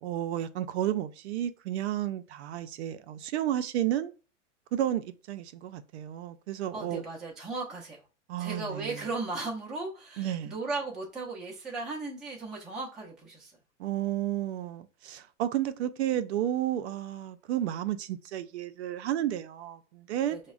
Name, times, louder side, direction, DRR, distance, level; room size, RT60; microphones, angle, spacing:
voice 1, 0.0-4.1 4.7-7.0 8.3-9.0 10.2-10.5 13.8-20.4, right 12 dB, 65° right, 0.5 m, -32 dB
voice 2, 6.7-8.0 8.4-13.6 20.3-20.4, right 3 dB, ahead, 0.4 m, -36 dB
5.0 x 2.1 x 2.3 m
supercardioid pair, 155°, 37 cm